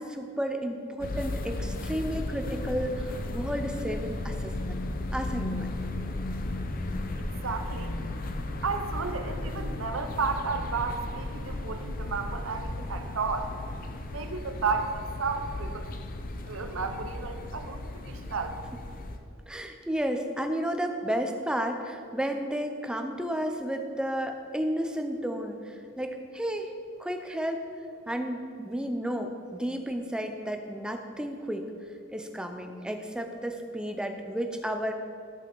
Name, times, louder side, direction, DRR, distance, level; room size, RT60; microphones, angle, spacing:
voice 1, 0.0-4.8 5.1-5.8 19.5-26.7 27.0-27.6 28.1-31.7 32.1-34.9, equal, 5° right, 5 dB, 0.5 m, -32 dB
sound 1, 1.0-19.2, left 2 dB, 45° left, 0.6 m, -35 dB
voice 2, 7.2-8.0 8.6-13.5 14.1-15.9 16.4-17.8 18.1-18.6, right 4 dB, 70° right, 7 dB, 0.7 m, -32 dB
13.0 x 5.5 x 4.6 m, 2.4 s
head